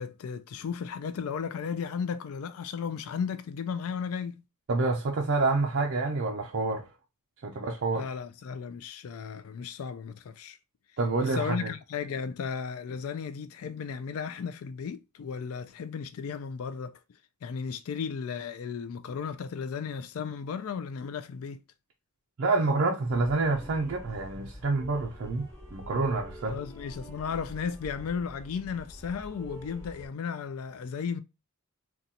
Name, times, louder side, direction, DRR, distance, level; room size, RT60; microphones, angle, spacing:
voice 1, 0.0-4.4 8.0-10.6 11.2-16.9 17.4-21.6 26.5-31.2, left 6 dB, 70° left, 0.3 m, -35 dB
voice 2, 4.7-6.9 7.4-8.1 11.0-11.7 22.4-26.6, right 3 dB, 55° right, 0.5 m, -28 dB
sound 1, 23.1-30.1, equal, 15° left, 1.0 m, -46 dB
3.9 x 2.3 x 2.7 m
head